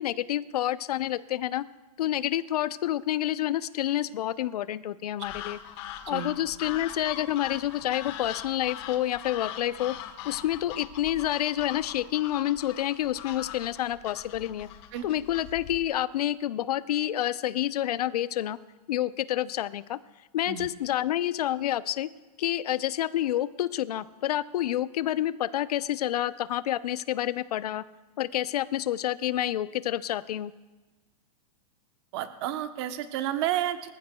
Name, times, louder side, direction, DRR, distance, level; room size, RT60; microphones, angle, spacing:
voice 1, 0.0-1.6 2.0-5.6 6.1-9.9 10.2-14.7 15.0-18.6 18.9-20.0 20.3-22.1 22.4-27.8 28.2-30.5, left 13 dB, 75° left, 15 dB, 0.6 m, -28 dB
sound 1, 5.2-15.9, left 11 dB, 40° left, 1.2 m, -41 dB
voice 2, 32.1-33.9, right 12 dB, 45° right, 9 dB, 0.9 m, -31 dB
24.0 x 14.5 x 2.3 m, 1.2 s
supercardioid pair, 155°, 20 cm